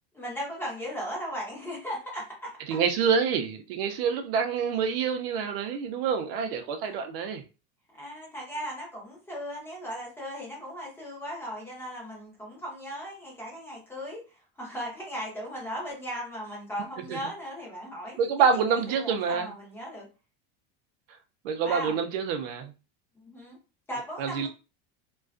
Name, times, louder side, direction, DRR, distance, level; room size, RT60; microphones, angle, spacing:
voice 1, 0.1-2.8 6.8-7.0 8.0-18.2 18.5-20.1 21.6-22.0 23.2-23.6 23.9-24.5, equal, 5° left, 0.6 m, -37 dB
voice 2, 2.7-7.4 17.1-17.2 18.2-19.5 21.4-22.7 24.2-24.5, right 6 dB, 65° right, 0.5 m, -27 dB
2.4 x 2.2 x 2.3 m
supercardioid pair, 170°, 32 cm